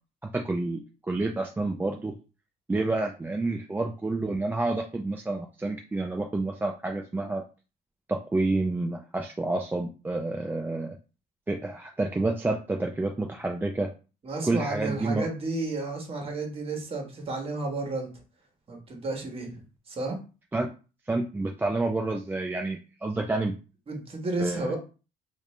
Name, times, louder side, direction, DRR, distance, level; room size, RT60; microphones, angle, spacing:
voice 1, 0.3-0.8 1.1-2.1 2.7-7.4 8.1-11.0 11.5-13.9 14.4-15.3 20.5-20.7 21.1-23.5 24.4-24.8, right 2 dB, 10° right, 2 dB, 0.4 m, -29 dB
voice 2, 14.2-18.1 18.7-19.6 19.9-20.2 23.9-24.8, right 2 dB, 35° right, 1 dB, 1.3 m, -32 dB
3.4 x 2.5 x 3.2 m, 0.33 s
cardioid pair, 110°, 17 cm